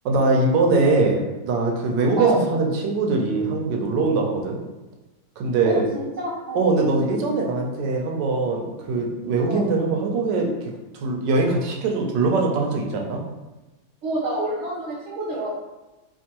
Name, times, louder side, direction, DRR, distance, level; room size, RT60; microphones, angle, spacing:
voice 1, 0.0-4.6 5.4-5.9 6.5-10.5 11.0-13.2, right 3 dB, 90° right, 1 dB, 1.3 m, -22 dB
voice 2, 5.6-6.6 9.5-9.6 14.0-15.6, right 1 dB, 60° right, -5 dB, 0.8 m, -28 dB
4.4 x 2.6 x 2.9 m, 1.1 s
omnidirectional pair, 1.9 m